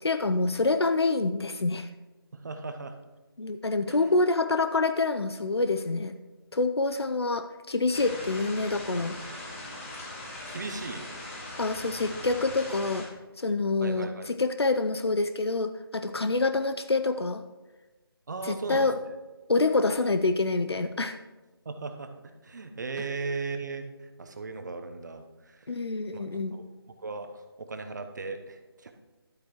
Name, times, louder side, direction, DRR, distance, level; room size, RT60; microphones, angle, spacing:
voice 1, 0.0-1.9 3.4-6.1 6.5-9.1 11.6-13.1 13.4-17.4 18.4-19.0 19.5-21.2 25.7-26.6, left 3 dB, 85° left, 9 dB, 0.6 m, -26 dB
voice 2, 2.3-3.0 3.9-4.0 10.5-11.0 13.8-14.3 18.3-18.9 21.6-22.1 22.4-25.6 26.1-26.7 27.0-28.9, right 4 dB, 45° right, 7 dB, 0.9 m, -37 dB
sound 1, 7.9-13.0, left 1 dB, 30° left, 2.5 m, -40 dB
11.5 x 8.5 x 3.0 m, 1.2 s
figure-of-eight pair, 160°, 13 cm